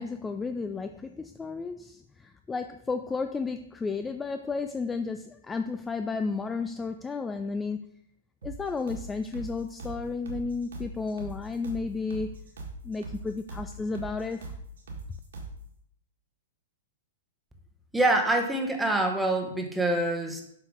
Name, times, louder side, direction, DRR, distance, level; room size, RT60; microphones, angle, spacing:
voice 1, 0.0-7.9 8.4-12.4 12.8-14.5, left 4 dB, 15° left, 8 dB, 0.3 m, -33 dB
sound 1, 8.4-15.6, right 2 dB, 75° right, 1.7 m, -41 dB
voice 2, 17.9-20.4, right 2 dB, 5° right, 3 dB, 1.0 m, -25 dB
7.5 x 4.6 x 3.8 m, 0.73 s
hypercardioid pair, 120°, 0 cm